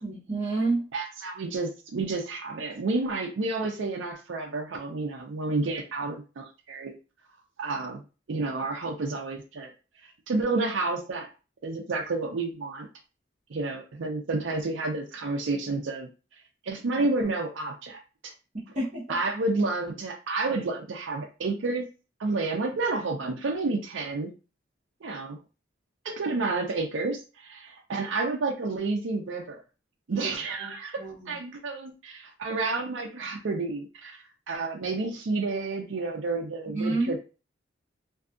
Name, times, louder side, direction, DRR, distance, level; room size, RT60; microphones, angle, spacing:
voice 1, 0.0-0.9 18.7-19.1 30.1-30.3 30.6-30.7 31.0-31.4 36.7-37.1, right 2 dB, 40° right, -6 dB, 1.0 m, -29 dB
voice 2, 0.9-6.9 7.6-8.0 8.3-9.7 10.0-11.3 11.6-12.9 13.5-16.1 16.7-18.3 19.1-21.9 22.2-24.3 25.0-25.4 26.0-29.6 30.1-37.2, right 3 dB, 70° right, 2 dB, 0.5 m, -30 dB
2.6 x 2.4 x 2.4 m, 0.32 s
head